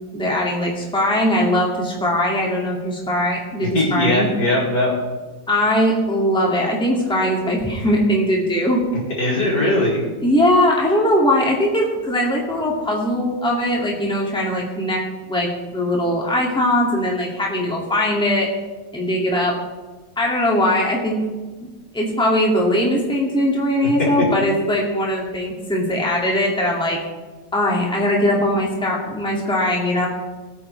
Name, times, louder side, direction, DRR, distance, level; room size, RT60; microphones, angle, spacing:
voice 1, 0.1-4.3 5.5-8.8 10.2-15.0 15.3-18.5 18.9-19.5 20.2-21.2 21.9-27.0 27.5-30.1, left 1 dB, 5° left, -2 dB, 2.2 m, -20 dB
voice 2, 3.6-4.9 9.2-10.0, left 1 dB, 70° left, -5 dB, 4.6 m, -19 dB
21.0 x 9.1 x 3.3 m, 1.3 s
omnidirectional pair, 1.8 m